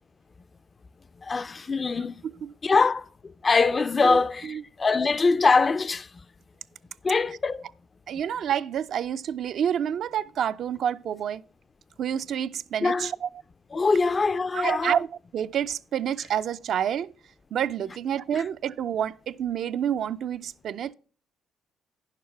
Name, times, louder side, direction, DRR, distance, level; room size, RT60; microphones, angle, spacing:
voice 1, 1.2-2.2 2.6-6.1 7.0-7.6 12.8-13.1 13.7-15.0 18.4-18.5, left 4 dB, 35° left, 0.3 m, -23 dB
voice 2, 4.0-4.6 8.1-11.4 12.0-13.3 14.5-15.1 15.3-17.1 17.5-20.9, right 9 dB, 70° right, 0.3 m, -28 dB
10.0 x 6.6 x 4.4 m
cardioid pair, 90°, 0 cm